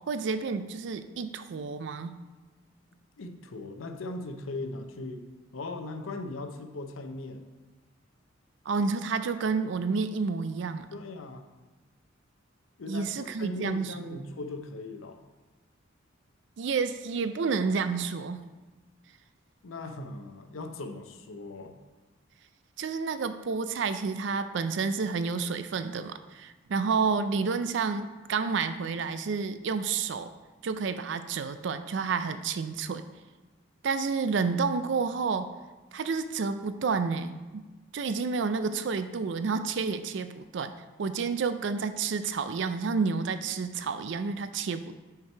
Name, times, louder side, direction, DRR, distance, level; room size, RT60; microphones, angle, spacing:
voice 1, 0.1-2.1 8.7-10.9 12.9-14.2 16.6-18.4 22.8-30.3 30.6-33.0 33.8-35.5 35.9-37.6 37.9-40.7 41.0-45.0, right 5 dB, 65° right, 11 dB, 0.4 m, -30 dB
voice 2, 3.2-5.3 5.5-7.5 10.9-11.5 12.8-15.2 19.6-21.8, left 2 dB, 85° left, 7 dB, 0.6 m, -39 dB
5.9 x 4.6 x 4.5 m, 1.3 s
head